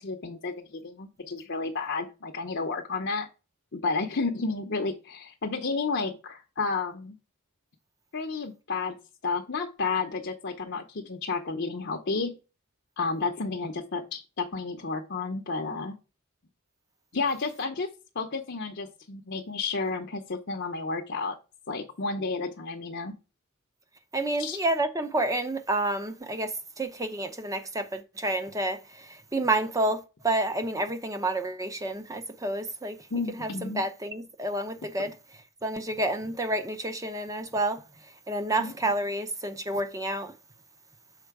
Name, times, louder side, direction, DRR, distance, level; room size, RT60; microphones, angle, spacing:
voice 1, 0.0-3.3 3.7-7.2 8.1-8.9 9.2-12.3 13.0-16.0 17.1-17.9 18.1-21.4 21.7-23.1 24.4-24.6 33.1-33.8 38.6-38.7, left 4 dB, 50° left, 0.7 m, -31 dB
voice 2, 24.1-33.0 33.3-35.2 35.6-37.8 38.3-40.3, right 2 dB, 15° right, 0.6 m, -29 dB
6.5 x 4.4 x 4.6 m
head